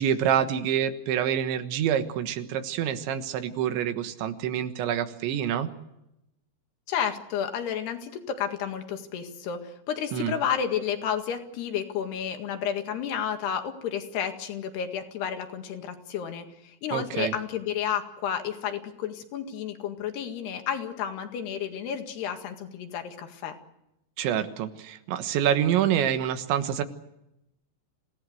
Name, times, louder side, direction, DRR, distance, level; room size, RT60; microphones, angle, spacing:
voice 1, 0.0-5.7 10.1-10.4 16.9-17.3 24.2-26.8, right 9 dB, 90° right, 9 dB, 3.7 m, -26 dB
voice 2, 6.9-23.6, left 8 dB, 70° left, 6 dB, 3.9 m, -31 dB
27.5 x 17.5 x 7.9 m, 0.88 s
omnidirectional pair, 5.1 m